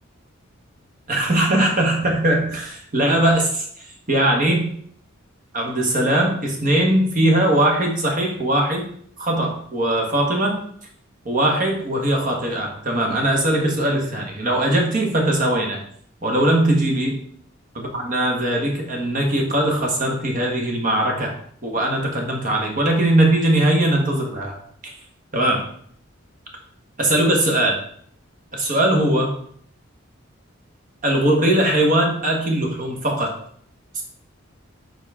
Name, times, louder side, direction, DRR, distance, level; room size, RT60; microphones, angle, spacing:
voice 1, 1.1-4.7 5.5-8.8 9.2-10.6 11.2-15.8 16.2-17.2 17.7-21.3 21.6-24.5 24.8-24.9 25.3-25.7 27.0-27.8 28.5-29.3 31.0-33.4 33.9-34.0, right 1 dB, 40° right, 1 dB, 1.3 m, -20 dB
6.9 x 4.1 x 3.6 m, 0.63 s
head